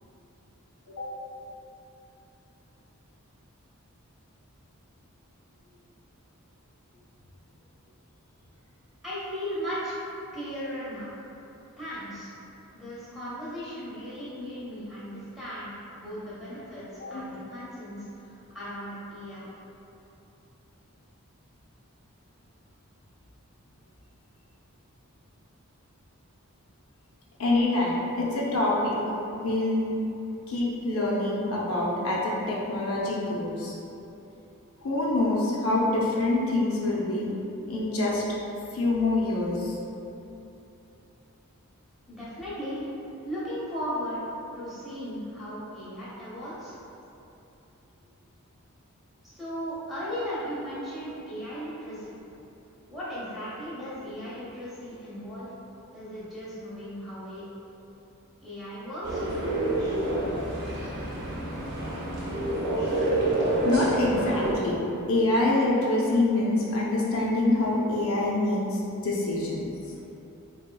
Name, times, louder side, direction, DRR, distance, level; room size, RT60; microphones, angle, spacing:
voice 1, 9.0-9.9 10.3-11.1 11.8-12.4 12.7-19.5 42.1-42.9 43.2-44.2 44.5-46.7 49.2-52.1 52.9-55.5 55.9-57.4 58.4-59.2, equal, ahead, -11 dB, 0.9 m, -36 dB
voice 2, 27.4-28.9 29.3-29.9 30.5-33.7 34.8-37.3 37.7-38.2 38.7-39.7 63.6-64.8 65.1-69.7, left 2 dB, 70° left, -5 dB, 0.6 m, -25 dB
sound 1, 59.0-64.5, right 1 dB, 50° right, 0.8 m, -28 dB
4.2 x 3.1 x 2.2 m, 2.9 s
head